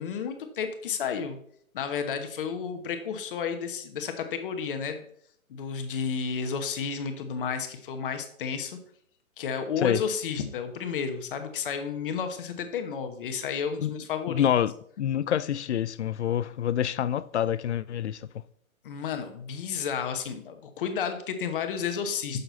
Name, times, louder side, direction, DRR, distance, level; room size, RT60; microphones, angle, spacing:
voice 1, 0.0-1.4 1.7-5.0 5.5-8.8 9.4-14.5 18.8-22.4, left 6 dB, 40° left, 1.2 m, -32 dB
voice 2, 14.3-14.7 15.0-18.2, left 10 dB, 55° left, 0.5 m, -26 dB
8.6 x 6.9 x 4.1 m
hypercardioid pair, 145°, 42 cm